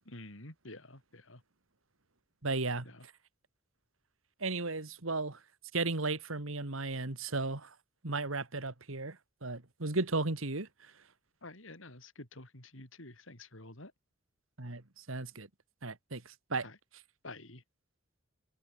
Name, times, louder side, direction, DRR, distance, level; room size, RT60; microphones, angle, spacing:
voice 1, 0.0-1.4 2.8-3.1 11.4-13.9 16.6-16.8 17.2-17.6, left 2 dB, 70° left, 6.8 m, -49 dB
voice 2, 2.4-2.9 4.4-5.4 5.7-7.7 8.0-10.7 14.6-14.8 15.1-15.5 15.8-16.7, right 3 dB, 80° right, 2.2 m, -35 dB
head